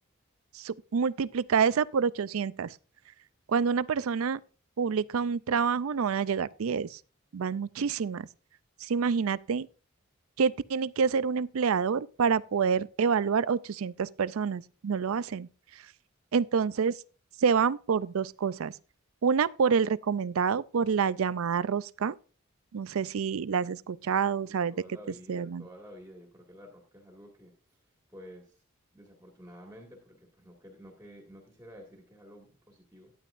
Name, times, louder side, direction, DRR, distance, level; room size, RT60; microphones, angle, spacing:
voice 1, 0.5-2.8 3.5-4.4 4.8-7.0 7.3-8.3 8.8-9.7 10.4-15.9 16.3-17.0 17.4-18.7 19.2-22.2 22.7-24.7 25.3-25.6, right 6 dB, 80° right, 0.4 m, -27 dB
voice 2, 24.2-28.6 28.9-33.1, equal, 10° right, 2.0 m, -51 dB
12.0 x 10.5 x 2.5 m
head